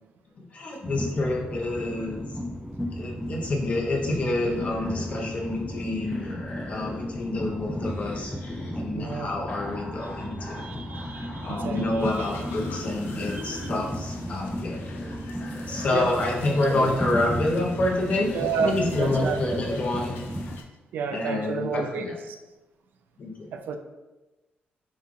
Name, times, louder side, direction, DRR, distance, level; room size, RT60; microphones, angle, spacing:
voice 1, 0.5-2.3 2.9-6.4 6.7-8.4 8.7-10.6 11.4-14.8 15.7-18.3 18.6-20.1 21.1-22.2 23.2-23.5, left 2 dB, 40° left, 0 dB, 0.7 m, -28 dB
Train, 0.8-20.6, equal, ahead, 0.3 m, -34 dB
sound 1, 4.1-5.2 5.5-7.1 7.8-8.7 9.5-11.9 12.5-13.8 14.5-17.2 17.8-20.2, left 1 dB, 65° left, 1.3 m, -42 dB
voice 2, 8.9-9.3 10.6-12.3 13.4-13.6 15.9-16.1 16.8-16.9 18.3-19.6 20.9-22.4 23.5-23.8, right 5 dB, 65° right, 6 dB, 0.4 m, -31 dB
sound 2, 12.0-20.6, left 4 dB, 90° left, 0.5 m, -47 dB
5.6 x 2.4 x 3.1 m, 1.1 s
cardioid pair, 150°, 4 cm